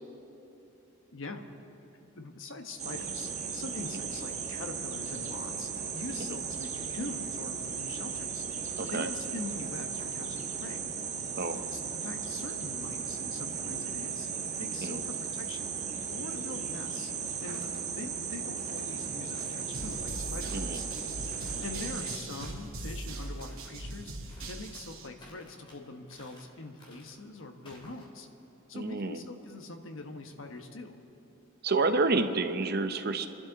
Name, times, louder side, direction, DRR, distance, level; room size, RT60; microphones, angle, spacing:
voice 1, 1.1-1.4 2.1-8.5 8.8-10.9 11.7-15.7 16.1-17.1 17.4-17.6 17.9-20.9 21.6-28.3 28.7-31.0, left 2 dB, 65° left, 5 dB, 1.2 m, -43 dB
sound 1, 2.8-22.2, right 6 dB, 30° right, 1.3 m, -36 dB
voice 2, 8.8-9.1 11.3-11.6 14.8-15.0 20.5-20.8 28.7-29.2 31.6-33.3, right 3 dB, 50° right, 8 dB, 0.8 m, -29 dB
sound 2, 17.1-17.8 18.4-18.9 19.3-20.0 20.4-20.8 21.3-21.8 22.2-22.7 23.1-23.7 24.3-24.9 25.2-25.8 26.1-26.5 26.8-27.2 27.7-28.0, left 1 dB, 25° left, 2.8 m, -56 dB
sound 3, 19.7-25.1, right 2 dB, 75° right, 2.0 m, -41 dB
29.0 x 12.0 x 4.1 m, 2.9 s
head